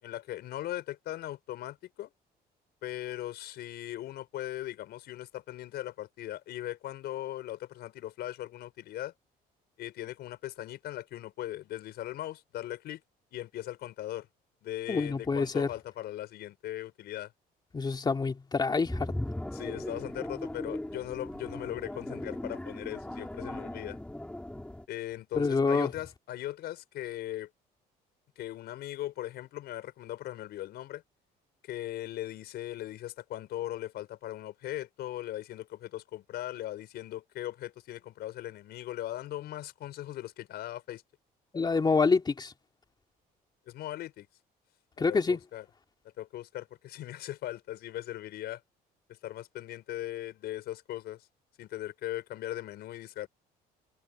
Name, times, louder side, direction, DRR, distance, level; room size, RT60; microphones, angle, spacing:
voice 1, 0.0-2.1 2.8-9.1 9.8-13.0 13.3-14.3 14.6-17.3 19.5-24.0 24.9-27.5 28.4-31.0 31.6-41.0 43.7-44.3 45.1-45.6 46.2-48.6 49.1-51.3 51.6-53.3, left 14 dB, 75° left, 6.0 m, -39 dB
voice 2, 14.9-15.7 17.7-19.1 25.3-25.9 41.5-42.5 45.0-45.4, left 4 dB, 25° left, 2.9 m, -27 dB
sound 1, 18.9-24.8, left 1 dB, 5° left, 5.5 m, -38 dB
cardioid pair, 110°, 17 cm